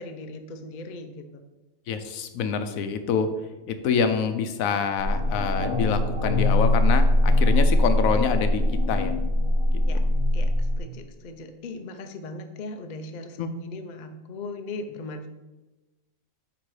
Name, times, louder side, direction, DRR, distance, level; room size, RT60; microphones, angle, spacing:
voice 1, 0.0-1.4 9.9-10.0 10.3-15.3, left 2 dB, 50° left, 6 dB, 0.5 m, -38 dB
voice 2, 1.9-3.3 3.7-8.6 8.9-9.1 9.9-10.0 13.4-13.5, left 6 dB, 80° left, 9 dB, 1.0 m, -26 dB
sound 1, 5.0-10.8, left 1 dB, 20° right, 1.2 m, -22 dB
8.9 x 3.0 x 4.8 m, 1.1 s
omnidirectional pair, 1.4 m